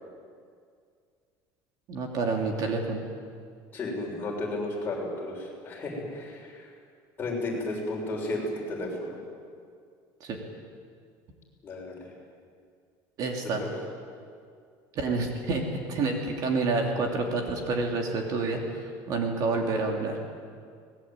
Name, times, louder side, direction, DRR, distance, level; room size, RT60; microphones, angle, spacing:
voice 1, 1.9-3.0 10.2-10.4 13.2-13.6 14.9-18.7 19.1-20.2, right 3 dB, 45° right, 2 dB, 2.8 m, -28 dB
voice 2, 3.7-6.7 7.2-9.2 11.6-12.1 13.4-13.7, left 2 dB, 25° left, -2 dB, 6.6 m, -33 dB
24.0 x 20.0 x 9.1 m, 2.2 s
cardioid pair, 165°, 9 cm